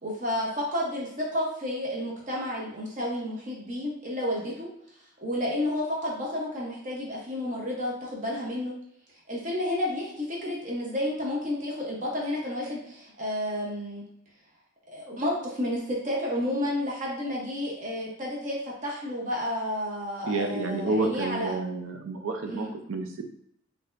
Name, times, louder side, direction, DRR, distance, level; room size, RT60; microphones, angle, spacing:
voice 1, 0.0-4.7 5.2-8.7 9.3-14.0 14.9-21.5 22.5-22.7, left 1 dB, 40° right, -3 dB, 0.9 m, -31 dB
voice 2, 20.2-23.2, right 3 dB, 80° right, 5 dB, 0.5 m, -30 dB
4.2 x 2.7 x 2.5 m, 0.72 s
head